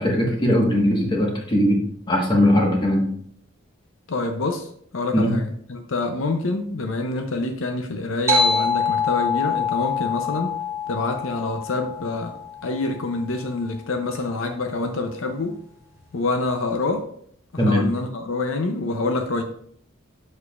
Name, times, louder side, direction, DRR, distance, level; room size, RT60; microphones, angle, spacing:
voice 1, 0.0-1.8 2.1-3.1 5.1-5.4 17.6-17.8, left 1 dB, 25° left, -1 dB, 1.4 m, -19 dB
voice 2, 4.1-10.5 10.9-12.4 12.6-15.6 16.1-17.1 17.7-19.4, left 3 dB, 75° left, 5 dB, 0.6 m, -26 dB
sound 1, 8.3-13.2, left 4 dB, 15° right, 1.1 m, -25 dB
6.9 x 6.5 x 2.4 m, 0.64 s
head